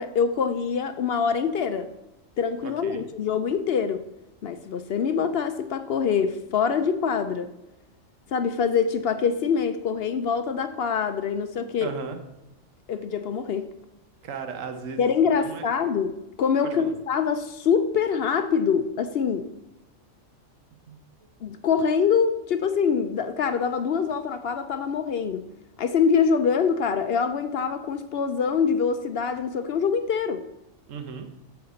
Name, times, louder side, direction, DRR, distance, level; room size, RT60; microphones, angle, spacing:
voice 1, 0.0-1.9 2.4-4.1 4.4-7.5 8.3-11.9 12.9-13.7 15.0-19.5 21.4-25.5 25.8-30.4, left 6 dB, 60° left, 0.7 m, -24 dB
voice 2, 2.6-3.0 11.8-12.2 14.2-15.6 16.6-16.9 20.9-21.0 30.9-31.3, right 5 dB, 75° right, 1.3 m, -36 dB
8.7 x 4.7 x 6.9 m
omnidirectional pair, 1.4 m